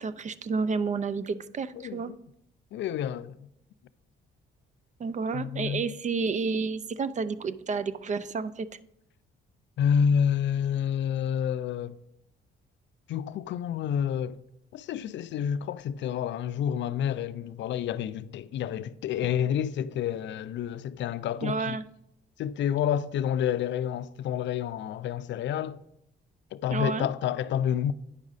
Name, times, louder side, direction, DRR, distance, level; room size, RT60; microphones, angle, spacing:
voice 1, 0.0-2.1 5.0-8.7 21.4-21.8 26.7-27.1, right 4 dB, 40° right, 0.4 m, -30 dB
voice 2, 1.8-2.2 2.7-3.3 5.3-5.9 9.8-12.0 13.1-14.4 14.7-21.8 22.4-25.8 26.5-27.9, left 8 dB, 65° left, 0.4 m, -29 dB
9.6 x 6.1 x 4.0 m
cardioid pair, 90°, 20 cm